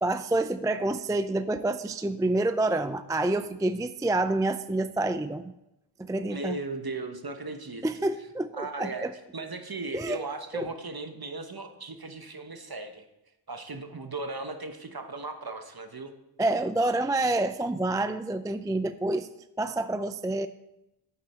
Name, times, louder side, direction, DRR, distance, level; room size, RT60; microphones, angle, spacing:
voice 1, 0.0-5.5 6.0-6.6 7.8-9.1 9.9-10.2 10.5-10.7 16.4-19.3 19.6-20.5, right 2 dB, 10° right, 11 dB, 0.3 m, -28 dB
voice 2, 6.3-7.8 8.5-13.0 13.5-16.1, right 3 dB, 45° right, 7 dB, 1.1 m, -37 dB
9.4 x 8.6 x 4.3 m, 0.90 s
wide cardioid pair, 50°, 49 cm